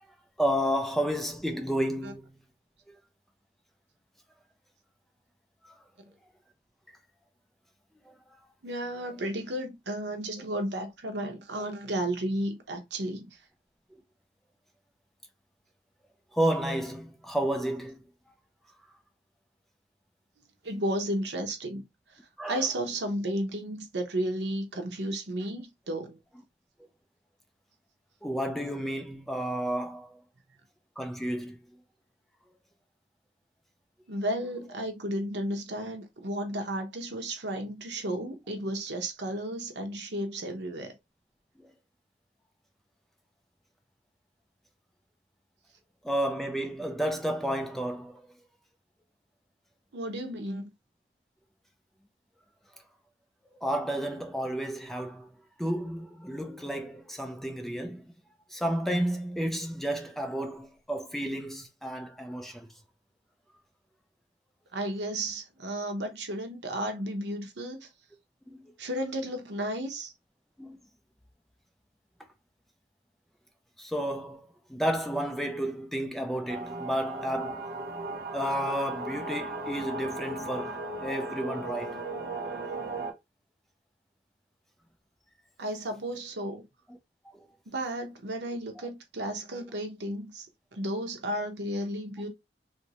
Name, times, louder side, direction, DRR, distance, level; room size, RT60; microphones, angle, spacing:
voice 1, 0.4-2.3 8.1-8.2 16.3-18.0 22.4-22.6 28.2-30.2 31.0-31.6 41.6-41.7 46.0-48.2 53.6-55.3 55.6-58.1 58.5-62.7 68.5-68.7 70.6-70.8 73.8-78.1 78.3-81.9 87.3-87.5 88.8-88.9, equal, ahead, 0.3 m, -31 dB
voice 2, 8.6-13.3 20.6-21.8 22.5-26.2 34.1-40.9 49.9-50.7 64.7-67.9 68.8-70.1 85.6-86.6 87.7-90.4 90.7-92.3, right 1 dB, 85° right, 0.8 m, -33 dB
sound 1, 76.5-83.1, right 2 dB, 55° right, 0.7 m, -36 dB
3.0 x 2.6 x 2.8 m
head